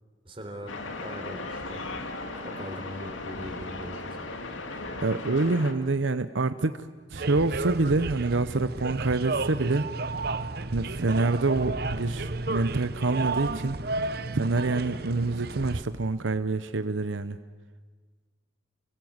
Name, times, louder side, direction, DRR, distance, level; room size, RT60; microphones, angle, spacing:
voice 1, 0.2-0.7 1.0-1.8 2.4-4.4, equal, 30° right, 3 dB, 3.9 m, -41 dB
sound 1, 0.7-5.7, left 2 dB, 90° left, 2.6 m, -37 dB
voice 2, 5.0-9.9 10.7-13.8 14.3-17.4, right 3 dB, 80° right, 11 dB, 0.8 m, -26 dB
sound 2, 7.1-15.8, right 3 dB, 50° right, 0.9 m, -32 dB
30.0 x 24.0 x 8.0 m, 1.4 s
head